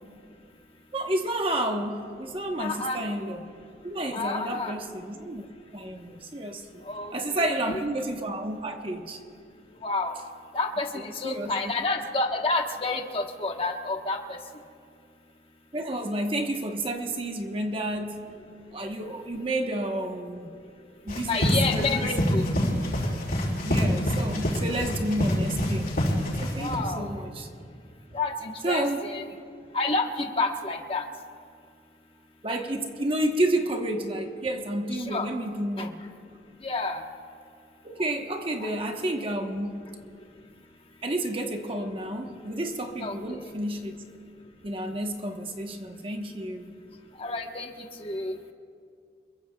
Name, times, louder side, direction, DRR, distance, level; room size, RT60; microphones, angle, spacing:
voice 1, 0.9-3.4 3.8-5.4 5.7-6.7 7.1-9.2 10.9-11.6 15.7-18.2 18.7-20.5 21.0-22.2 23.6-25.9 26.4-27.5 28.6-29.0 32.4-36.0 37.8-39.8 41.0-44.0 44.6-46.7, right 1 dB, 30° right, 1.0 m, -30 dB
voice 2, 2.6-3.0 4.1-4.7 6.8-7.1 9.8-10.2 10.5-14.4 21.3-22.5 26.6-27.1 28.1-29.3 29.7-31.0 35.0-35.3 35.8-35.9 36.6-37.0 38.6-38.7 43.0-43.2 47.2-47.7 48.0-48.3, left 3 dB, 30° left, 1.2 m, -29 dB
sound 1, 21.1-26.8, equal, 55° left, 5.3 m, -26 dB
28.0 x 22.5 x 2.3 m
head